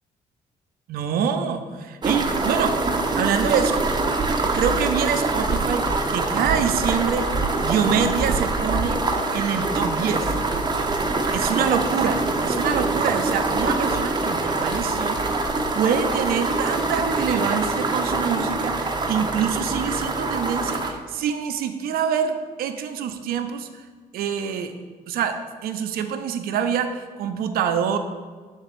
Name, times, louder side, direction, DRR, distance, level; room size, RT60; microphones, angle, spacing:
voice 1, 0.9-3.8 4.5-7.3 7.6-9.0 9.3-10.3 11.3-23.7 24.1-24.7 25.1-25.4 25.6-28.0, right 7 dB, 75° right, 8 dB, 0.5 m, -25 dB
sound 1, 2.0-20.9, right 3 dB, 30° right, 0.7 m, -24 dB
6.9 x 3.8 x 4.2 m, 1.5 s
supercardioid pair, 70°, 15 cm